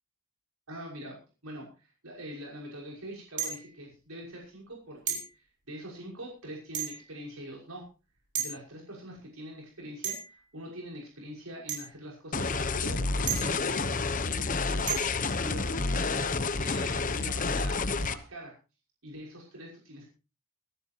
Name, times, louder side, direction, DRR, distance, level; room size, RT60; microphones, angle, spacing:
voice 1, 0.7-1.2 1.4-7.8 8.4-18.5 19.0-20.1, equal, 80° right, -2 dB, 5.9 m, -44 dB
sound 1, 3.4-3.7 5.1-5.3 6.7-7.1 8.3-8.5 10.0-10.4 11.7-11.9 13.3-13.7 14.9-15.2, right 8 dB, 50° right, 5.3 m, -33 dB
sound 2, 12.3-18.1, left 3 dB, 35° left, 0.9 m, -29 dB
25.0 x 11.5 x 2.9 m, 0.32 s
head